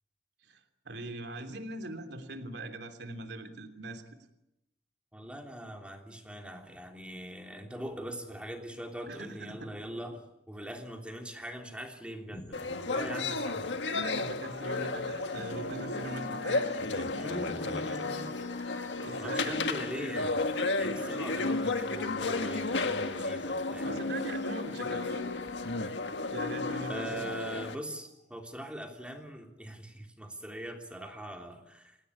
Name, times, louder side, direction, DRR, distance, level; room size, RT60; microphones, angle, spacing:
voice 1, 0.4-4.0 9.1-9.7 13.1-13.4 14.0-17.2 19.0-19.6 23.8-25.2 26.3-27.2, right 2 dB, 65° right, 6 dB, 3.1 m, -41 dB
voice 2, 5.1-13.6 17.1-18.3 19.2-20.4 20.8-24.0 26.9-32.0, equal, 5° right, 2 dB, 3.2 m, -42 dB
sound 1, 12.3-29.2, left 4 dB, 45° left, 4.8 m, -53 dB
sound 2, 12.5-27.8, left 3 dB, 80° left, 1.6 m, -33 dB
29.5 x 16.5 x 8.5 m, 0.86 s
head